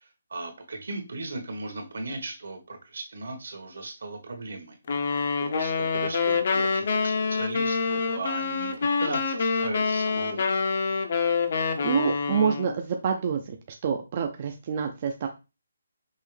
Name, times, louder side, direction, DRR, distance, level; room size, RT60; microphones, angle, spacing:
voice 1, 0.0-4.8 5.4-10.4, right 2 dB, 65° right, 4 dB, 1.4 m, -37 dB
sound 1, 4.9-12.8, left 4 dB, 40° left, 0.5 m, -26 dB
voice 2, 11.8-13.6 13.8-15.3, right 7 dB, 30° right, 4 dB, 0.4 m, -27 dB
5.5 x 2.9 x 3.2 m, 0.28 s
hypercardioid pair, 175°, 0 cm